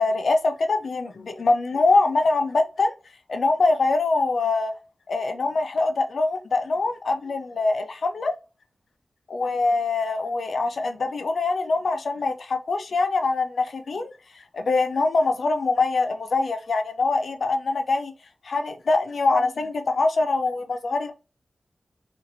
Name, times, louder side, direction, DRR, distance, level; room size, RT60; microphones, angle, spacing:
voice 1, 0.0-2.9 3.3-4.7 5.1-8.3 9.3-14.1 14.5-18.1 18.4-21.1, left 3 dB, 80° left, 0.5 m, -23 dB
2.9 x 2.5 x 2.6 m
wide cardioid pair, 95°, 0 cm